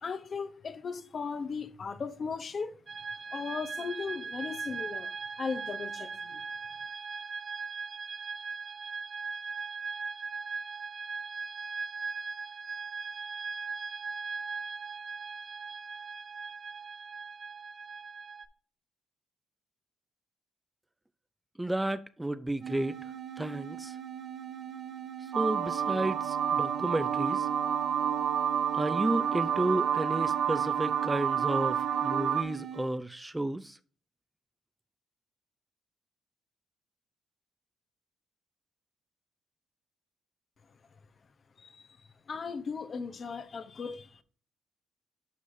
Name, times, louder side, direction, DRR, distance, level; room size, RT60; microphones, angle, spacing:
voice 1, 0.0-2.8 3.3-5.1 5.4-6.4 41.6-42.0 42.3-44.2, left 5 dB, 45° left, 0.8 m, -37 dB
sound 1, 2.9-18.5, right 5 dB, 40° right, 0.7 m, -39 dB
voice 2, 21.6-24.0 25.3-27.5 28.7-33.8, right 1 dB, 10° right, 0.4 m, -32 dB
sound 2, 22.6-33.0, right 9 dB, 55° right, 1.3 m, -42 dB
sound 3, 25.3-32.4, right 8 dB, 75° right, 0.7 m, -29 dB
12.0 x 4.8 x 2.6 m
cardioid pair, 90°, 0 cm